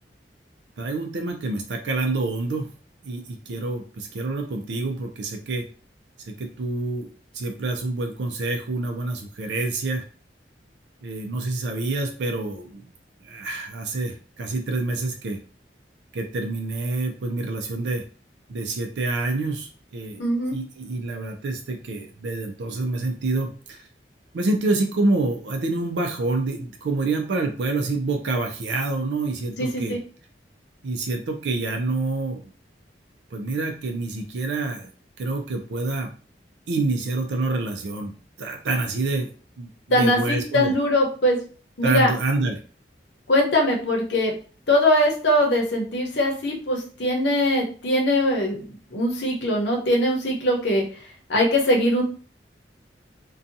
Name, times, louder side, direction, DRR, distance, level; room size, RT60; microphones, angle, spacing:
voice 1, 0.8-2.7 3.0-5.6 6.3-7.1 7.3-10.0 11.0-12.8 13.2-15.4 16.1-18.0 18.5-20.2 20.5-23.8 24.3-30.0 30.8-32.4 33.3-34.9 35.2-36.1 36.7-39.3 39.6-40.7 41.8-42.6, right 2 dB, 75° right, 3 dB, 0.4 m, -27 dB
voice 2, 20.2-20.5 29.6-30.0 39.9-41.4 41.8-42.1 43.3-44.3 44.7-48.7 48.9-50.8 51.3-52.0, left 1 dB, 85° left, 0 dB, 0.8 m, -21 dB
2.6 x 2.3 x 2.6 m, 0.40 s
head